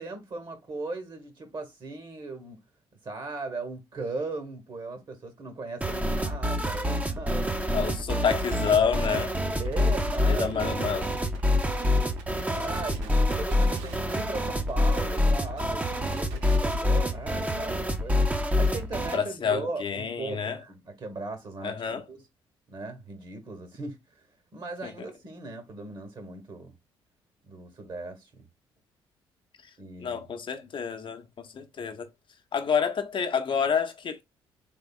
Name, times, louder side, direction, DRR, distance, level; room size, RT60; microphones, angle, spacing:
voice 1, 0.0-2.6 3.0-7.7 9.6-10.9 12.5-18.3 18.5-22.2 22.7-24.3 24.5-26.7 27.4-28.4 29.8-30.4, right 3 dB, 40° right, 1.2 m, -38 dB
sound 1, 5.8-19.2, left 1 dB, 10° right, 0.7 m, -26 dB
voice 2, 7.7-9.4 10.3-11.1 11.9-12.1 19.1-20.6 21.6-22.0 24.8-24.9 30.0-32.1 32.5-34.2, left 6 dB, 40° left, 0.8 m, -28 dB
sound 2, 9.6-17.1, right 4 dB, 70° right, 0.8 m, -45 dB
3.6 x 3.4 x 2.3 m
figure-of-eight pair, 45°, 12 cm